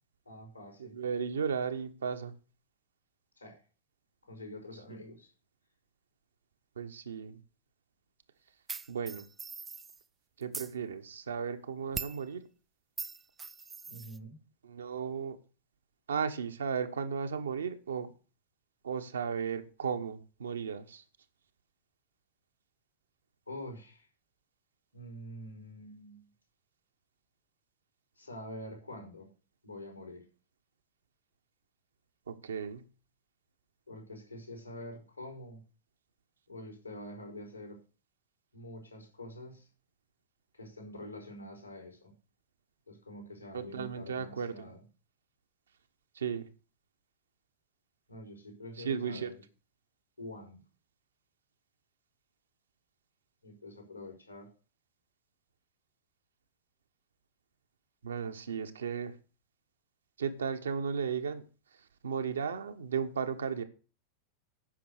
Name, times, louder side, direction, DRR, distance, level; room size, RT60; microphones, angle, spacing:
voice 1, 0.2-0.9 3.4-3.6 4.2-5.3 13.9-14.4 23.5-24.1 24.9-26.2 28.2-29.3 29.6-30.2 33.9-35.6 36.5-37.8 38.5-39.7 40.5-42.1 42.9-44.8 48.1-49.3 50.2-50.6 53.4-54.5, left 1 dB, 85° left, 2 dB, 4.8 m, -46 dB
voice 2, 0.8-2.3 6.8-7.4 8.9-9.2 10.4-12.4 14.6-15.4 16.1-18.1 18.8-21.0 32.3-32.8 43.5-44.7 46.2-46.5 48.8-49.3 58.0-59.1 60.2-61.4 62.0-63.6, right 6 dB, 70° right, 8 dB, 1.2 m, -35 dB
sound 1, 8.7-10.0 10.4-10.7 11.9-12.2 13.0-14.2, right 5 dB, 15° right, 0.5 m, -41 dB
9.9 x 6.2 x 6.6 m, 0.36 s
figure-of-eight pair, 90°, 0 cm